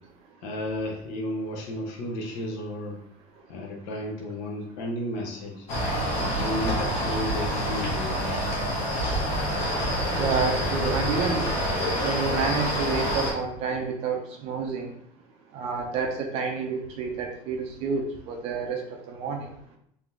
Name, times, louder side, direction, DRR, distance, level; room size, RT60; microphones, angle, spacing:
voice 1, 0.4-3.0 3.5-5.7 6.2-8.4, left 1 dB, 70° left, -1 dB, 0.9 m, -33 dB
sound 1, 5.7-13.3, equal, 45° left, 1.2 m, -27 dB
voice 2, 10.1-11.5 12.0-14.9 15.5-18.8 19.1-19.5, right 5 dB, 45° right, 2 dB, 0.6 m, -29 dB
3.6 x 2.8 x 3.5 m, 0.73 s
cardioid pair, 170°, 14 cm